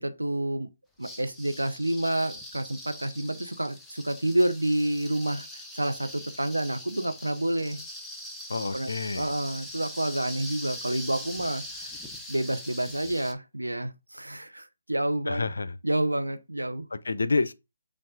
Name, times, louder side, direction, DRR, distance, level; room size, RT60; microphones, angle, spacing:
voice 1, 0.0-0.7 1.0-5.5 5.7-7.8 8.7-8.9 9.1-11.9 12.3-15.4 15.8-16.8, right 1 dB, 90° right, 0.6 m, -29 dB
sound 1, 1.0-13.3, left 1 dB, ahead, 0.5 m, -42 dB
voice 2, 8.5-9.3 15.3-15.8 16.9-17.5, left 3 dB, 70° left, 0.4 m, -28 dB
6.8 x 2.4 x 2.4 m
figure-of-eight pair, 145°, 0 cm